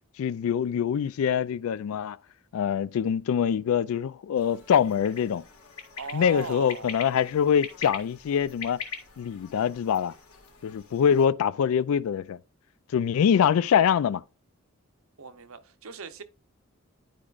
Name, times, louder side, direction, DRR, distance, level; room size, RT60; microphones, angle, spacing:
voice 1, 0.2-2.2 2.5-5.4 6.1-8.8 9.2-10.1 10.6-12.4 12.9-14.2, left 8 dB, 75° left, 0.3 m, -24 dB
sound 1, 4.4-11.3, left 6 dB, 90° left, 1.6 m, -43 dB
voice 2, 6.0-7.0 15.2-16.2, right 5 dB, 70° right, 0.7 m, -39 dB
10.5 x 4.9 x 2.4 m
head